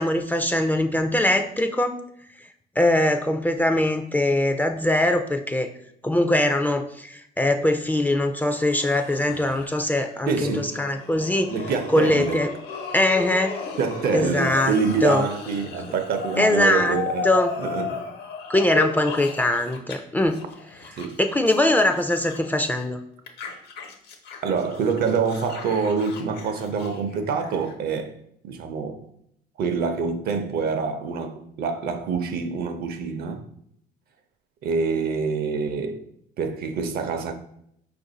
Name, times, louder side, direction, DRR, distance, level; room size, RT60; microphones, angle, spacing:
voice 1, 0.0-2.0 2.8-5.7 6.0-11.5 11.9-12.5 12.9-13.6 14.1-14.7 15.0-15.2 16.4-17.0 17.2-17.5 18.5-20.4 21.2-23.0, left 1 dB, 10° left, 0.3 m, -22 dB
sound 1, 8.4-19.9 20.2-22.9 23.3-27.7, left 5 dB, 75° left, 0.9 m, -35 dB
voice 2, 10.3-10.8 11.5-12.5 13.8-17.3 17.6-18.1 21.0-21.2 24.4-28.1 28.4-29.0 29.6-33.4 34.6-36.1 36.4-37.3, right 5 dB, 65° right, 0.6 m, -26 dB
4.8 x 2.5 x 3.9 m
cardioid pair, 110°, 17 cm